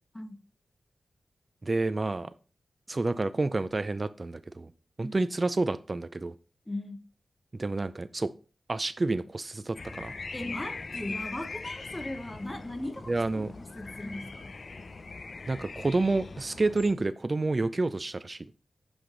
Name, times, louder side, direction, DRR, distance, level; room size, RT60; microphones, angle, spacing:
voice 1, 1.6-2.3 2.9-4.7 5.0-6.3 7.6-8.3 8.7-10.1 13.1-13.5 15.5-18.5, right 2 dB, 40° right, 0.3 m, -29 dB
voice 2, 6.6-7.0 10.3-14.6, left 1 dB, 20° left, 1.0 m, -38 dB
sound 1, 9.7-16.9, left 3 dB, 55° left, 0.6 m, -41 dB
8.1 x 3.3 x 3.8 m
cardioid pair, 55°, 0 cm